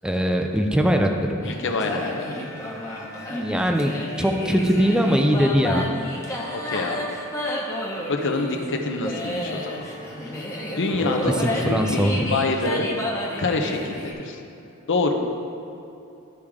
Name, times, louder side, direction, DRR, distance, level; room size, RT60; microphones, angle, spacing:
voice 1, 0.0-1.5 3.3-5.8 11.2-12.3, equal, 5° right, 3 dB, 0.4 m, -21 dB
voice 2, 1.4-2.3 6.6-7.0 8.1-9.8 10.7-11.3 11.6-12.9 13.4-14.4 14.9-15.1, left 3 dB, 55° left, 3 dB, 0.7 m, -26 dB
sound 1, 1.4-14.1, left 1 dB, 15° left, 1.0 m, -31 dB
12.5 x 4.9 x 3.6 m, 2.8 s
head